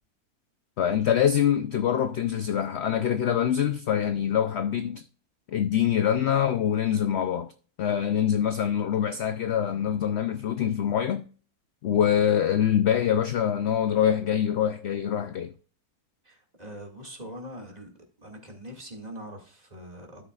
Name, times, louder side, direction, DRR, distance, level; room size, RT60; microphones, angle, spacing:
voice 1, 0.8-5.0 5.5-7.5 7.8-11.3 11.8-15.5, left 9 dB, 65° left, 0.7 m, -24 dB
voice 2, 16.2-17.9 18.2-20.3, equal, 25° right, 2.2 m, -42 dB
13.0 x 6.6 x 2.4 m
omnidirectional pair, 1.7 m